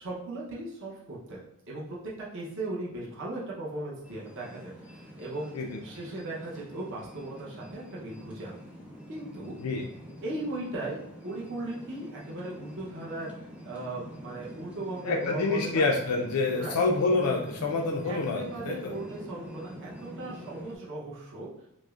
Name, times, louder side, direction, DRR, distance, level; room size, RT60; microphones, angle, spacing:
voice 1, 0.0-1.4 1.7-5.5 5.8-8.6 9.1-9.6 10.2-13.3 13.6-15.9 16.5-16.8 18.0-21.5, right 2 dB, 60° right, -5 dB, 0.8 m, -37 dB
sound 1, 4.0-20.8, equal, 5° right, 0.5 m, -45 dB
voice 2, 15.0-18.9, left 3 dB, 75° left, 1 dB, 0.4 m, -27 dB
6.1 x 2.0 x 2.4 m, 0.78 s
head